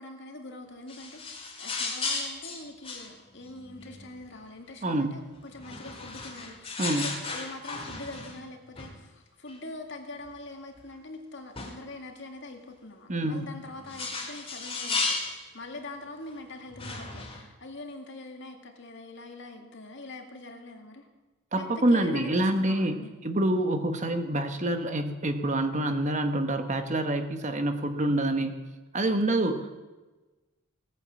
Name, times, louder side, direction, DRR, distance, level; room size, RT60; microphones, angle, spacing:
voice 1, 0.0-21.1 21.6-23.1 29.3-29.7, left 2 dB, 55° left, 4 dB, 2.1 m, -44 dB
sound 1, 0.9-4.4 5.5-8.5 8.8-9.0 9.5-9.6 10.3-10.4 10.8-10.9 11.6-11.8 13.4-15.4 16.3-16.4 16.7-17.4, left 3 dB, 25° left, 2.5 m, -35 dB
voice 2, 4.8-5.2 6.8-7.1 13.1-13.5 21.5-28.5 28.9-29.7, right 1 dB, 35° right, 7 dB, 1.1 m, -27 dB
18.0 x 9.1 x 7.5 m, 1.2 s
head